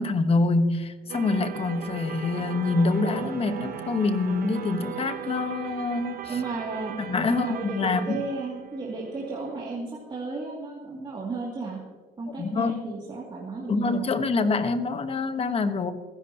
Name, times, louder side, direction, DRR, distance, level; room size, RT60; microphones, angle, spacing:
voice 1, 0.0-6.4 7.0-8.2 12.4-12.8 13.7-15.9, left 3 dB, 35° left, 9 dB, 1.2 m, -26 dB
sound 1, 1.0-5.2, left 3 dB, 75° left, 4.1 m, -45 dB
sound 2, 1.1-9.8, right 10 dB, 60° right, 0.9 m, -38 dB
voice 2, 6.3-7.0 7.3-11.8 12.2-14.1, right 3 dB, 25° right, -4 dB, 2.5 m, -34 dB
27.0 x 11.0 x 2.9 m, 1.5 s
cardioid pair, 110°, 17 cm